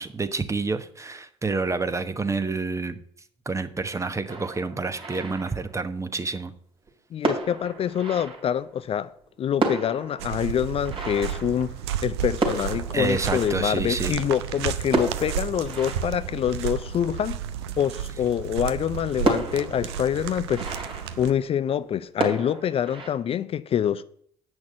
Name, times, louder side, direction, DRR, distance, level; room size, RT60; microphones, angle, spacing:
voice 1, 0.0-3.0 3.4-6.5 12.9-14.2, right 3 dB, 20° right, 1.1 m, -28 dB
sound 1, 4.3-6.1 6.9-7.0 7.2-8.9 9.3-9.4 9.6-14.3 14.9-17.5 18.0-18.1 18.5-18.6 19.2-21.9 22.2-23.1, right 3 dB, 40° right, 3.0 m, -32 dB
voice 2, 7.1-9.1 9.4-11.7 12.0-17.4 17.8-20.7 21.2-24.0, left 9 dB, 45° left, 0.5 m, -26 dB
sound 2, 10.2-21.3, right 9 dB, 80° right, 0.6 m, -32 dB
8.5 x 6.2 x 7.5 m
hypercardioid pair, 55°, 14 cm